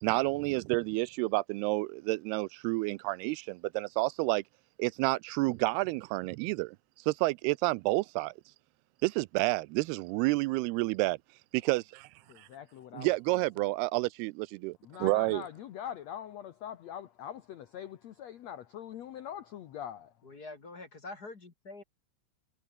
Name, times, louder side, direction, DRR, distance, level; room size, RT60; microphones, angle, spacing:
voice 1, 0.0-4.4 4.8-6.8 7.1-8.3 9.0-11.2 11.5-12.1 12.4-12.5 12.9-15.4, right 22 dB, 85° right, 2.5 m, -30 dB
voice 2, 12.3-13.7 14.8-20.3, left 10 dB, 80° left, 1.5 m, -43 dB
voice 3, 20.2-21.8, left 2 dB, 30° left, 2.1 m, -45 dB
omnidirectional pair, 4.6 m